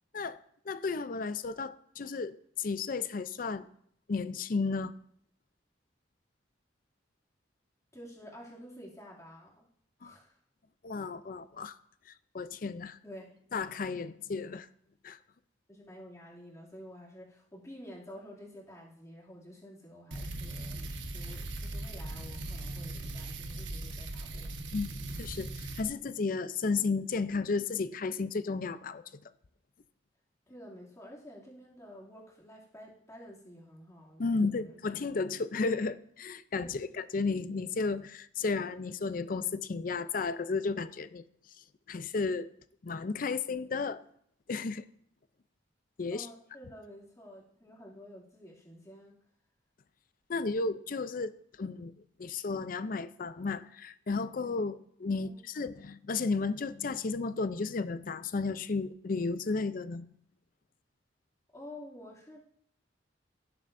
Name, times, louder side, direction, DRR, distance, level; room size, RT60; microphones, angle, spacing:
voice 1, 0.7-3.7 4.1-4.9 10.0-10.1 10.8-11.8 12.3-13.0 13.5-14.7 15.0-15.2 24.7-24.9 25.2-29.0 34.2-41.2 41.9-42.5 42.8-44.0 44.5-44.8 46.0-46.3 50.3-51.9 52.2-60.1, left 4 dB, 45° left, 0.5 m, -33 dB
voice 2, 7.9-9.7 10.0-10.4 13.0-13.4 15.7-24.5 30.5-34.8 36.6-36.9 46.1-49.2 55.2-55.4 61.5-62.4, equal, 15° left, 2.5 m, -50 dB
sound 1, 20.1-25.8, right 2 dB, 75° right, 1.1 m, -39 dB
16.5 x 7.6 x 2.6 m
head